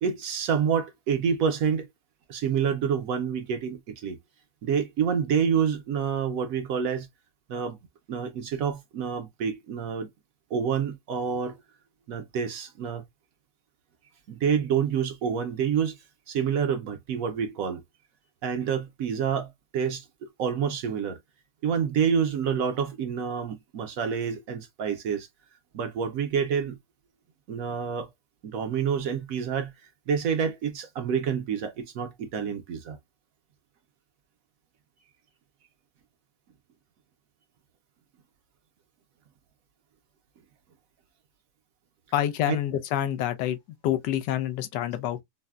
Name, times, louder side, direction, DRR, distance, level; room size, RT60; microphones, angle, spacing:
voice 1, 0.0-1.9 2.3-4.2 4.6-7.1 7.5-7.8 8.1-10.1 10.5-11.6 12.1-13.0 14.3-17.8 18.4-21.2 21.6-25.3 25.7-26.8 27.5-28.1 28.4-33.0 42.5-42.6, right 7 dB, 65° right, 0.9 m, -28 dB
voice 2, 42.1-43.6 43.8-45.2, left 11 dB, 90° left, 1.2 m, -27 dB
4.0 x 2.1 x 2.3 m
omnidirectional pair, 1.8 m